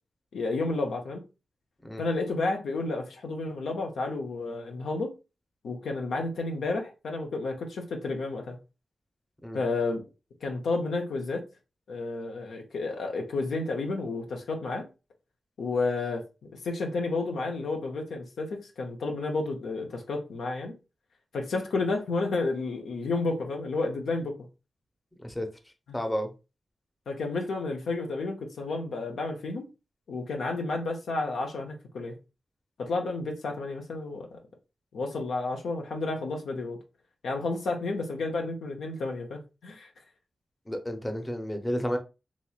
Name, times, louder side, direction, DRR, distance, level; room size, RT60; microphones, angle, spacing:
voice 1, 0.3-1.2 2.0-5.1 5.6-8.6 9.5-10.0 10.4-11.4 11.9-14.9 15.6-20.7 21.3-24.4 27.1-29.7 30.1-32.2 32.8-34.3 34.9-36.8 37.2-39.9, left 3 dB, 80° left, 0.6 m, -31 dB
voice 2, 25.9-26.3 40.7-42.0, equal, 20° left, 0.7 m, -31 dB
3.0 x 2.8 x 2.3 m
cardioid pair, 45°, 0 cm